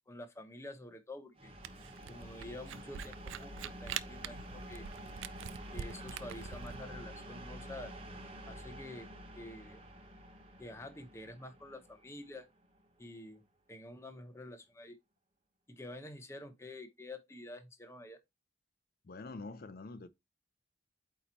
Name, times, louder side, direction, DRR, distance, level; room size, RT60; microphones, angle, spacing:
voice 1, 0.1-1.5 2.1-4.9 5.7-7.9 8.5-9.8 10.6-12.5 13.0-13.4 13.7-15.0 15.7-18.2, left 1 dB, 15° left, 0.8 m, -48 dB
sound 1, 1.4-13.0, equal, 30° right, 1.1 m, -49 dB
Camera, 1.6-6.8, right 9 dB, 65° right, 0.4 m, -44 dB
voice 2, 19.0-20.1, left 3 dB, 45° left, 0.4 m, -45 dB
8.5 x 3.0 x 4.1 m
head